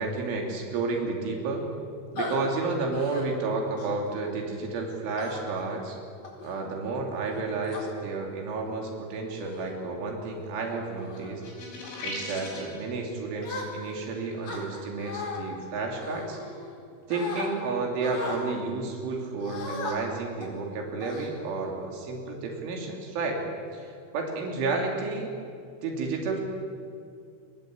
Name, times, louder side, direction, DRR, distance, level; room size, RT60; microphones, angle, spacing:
voice 1, 0.0-1.7 2.2-6.0 6.4-11.4 12.0-16.4 17.1-23.5 23.7-25.3 25.8-26.4, right 3 dB, 75° right, 2 dB, 5.3 m, -31 dB
sound 1, 2.2-2.4 2.9-3.3 3.8-4.1 5.2-5.6 6.2-6.5 7.3-7.8 8.7-8.9 9.4-9.7 10.2-10.5 11.0-11.3 11.8-12.1 13.4-14.0 14.4-15.4 16.0-16.8 17.1-17.5 18.0-18.4 19.4-19.9 20.4-20.6 21.0-21.7, left 3 dB, 40° left, 5.4 m, -37 dB
sound 2, 11.4-12.8, left 2 dB, 85° left, 8.8 m, -37 dB
27.5 x 23.0 x 8.5 m, 2.5 s
omnidirectional pair, 5.6 m